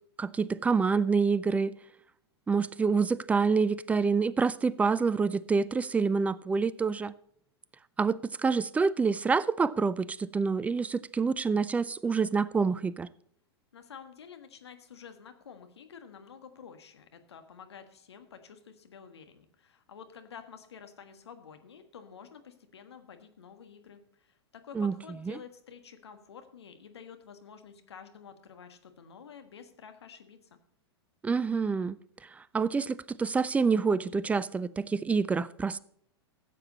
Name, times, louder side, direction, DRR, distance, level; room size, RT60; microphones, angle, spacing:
voice 1, 0.2-1.7 2.5-7.1 8.0-13.1 24.8-24.9 25.3-25.4 31.2-32.0 32.5-35.8, right 5 dB, 10° right, 0.3 m, -27 dB
voice 2, 13.7-30.6, left 7 dB, 75° left, 1.5 m, -50 dB
14.0 x 7.7 x 4.1 m
hypercardioid pair, 105°, 14 cm